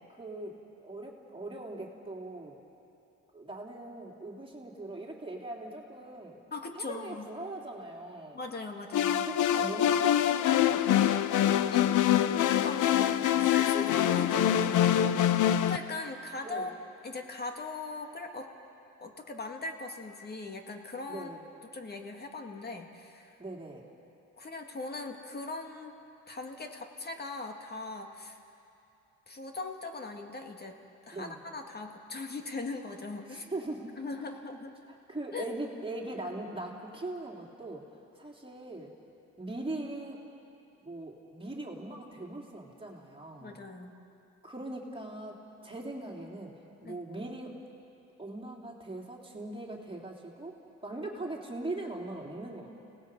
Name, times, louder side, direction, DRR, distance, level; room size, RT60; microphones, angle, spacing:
voice 1, 0.1-2.6 3.3-6.4 6.7-8.4 9.2-10.9 12.7-13.0 14.5-15.5 16.4-16.7 21.1-21.4 23.4-23.8 31.1-31.4 33.3-34.0 35.1-37.8 38.2-38.9 39.4-40.2 40.8-43.6 44.4-46.5 46.8-47.5 48.2-50.6 50.8-52.7, right 2 dB, 20° right, -1 dB, 3.2 m, -40 dB
voice 2, 6.5-7.3 8.3-9.3 11.7-11.9 12.6-13.0 13.4-14.8 15.6-16.8 17.0-18.5 19.0-21.3 21.7-23.4 24.4-25.9 26.3-28.4 29.3-30.8 31.1-33.5 34.0-34.7 35.3-35.6 43.4-44.0 46.8-47.0, left 3 dB, 35° left, 4 dB, 2.1 m, -39 dB
sound 1, 8.9-15.8, left 11 dB, 80° left, 0.7 m, -25 dB
29.5 x 18.5 x 5.4 m, 2.7 s
cardioid pair, 90°, 30 cm